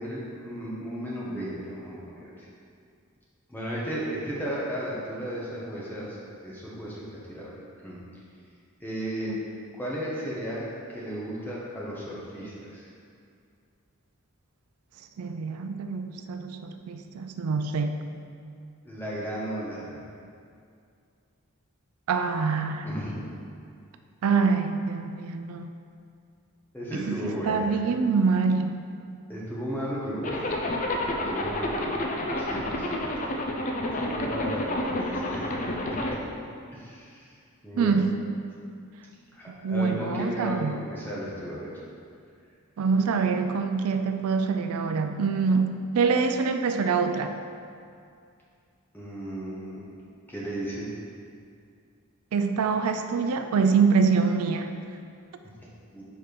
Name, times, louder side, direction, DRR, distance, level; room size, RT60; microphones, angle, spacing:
voice 1, 0.0-2.5 3.5-6.2 6.4-7.5 7.8-8.0 8.8-9.3 9.7-12.9 18.8-20.0 22.8-23.2 26.7-27.9 29.3-30.6 31.2-32.0 32.4-33.2 34.0-36.0 36.7-37.2 37.6-38.0 39.3-41.7 48.9-49.8 50.3-50.9 55.6-55.7 55.9-56.0, equal, 10° left, -7 dB, 1.2 m, -35 dB
voice 2, 15.2-18.0 22.1-22.9 24.2-25.7 26.9-28.8 37.8-38.2 39.5-40.8 42.8-47.4 52.3-54.7, right 5 dB, 85° right, 7 dB, 0.4 m, -25 dB
Zipper (clothing), 30.2-36.2, left 1 dB, 35° left, 0.5 m, -29 dB
4.9 x 4.4 x 5.2 m, 2.3 s
head